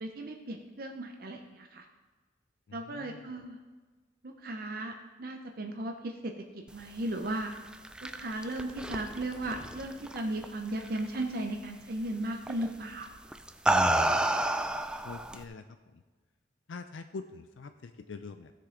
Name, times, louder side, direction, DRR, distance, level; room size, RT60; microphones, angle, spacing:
voice 1, 0.0-1.8 2.7-3.6 4.2-4.9 5.2-6.3 6.7-7.5 8.0-13.1, right 1 dB, 50° right, 3 dB, 0.6 m, -36 dB
voice 2, 2.7-3.3 13.8-14.3 15.0-15.7 15.9-16.0 16.7-18.5, left 4 dB, 85° left, 9 dB, 0.5 m, -45 dB
sound 1, 7.6-10.4 10.8-11.2 12.5-12.7 13.3-15.4, right 1 dB, 5° right, 0.3 m, -29 dB
16.0 x 6.6 x 3.8 m, 1.3 s
head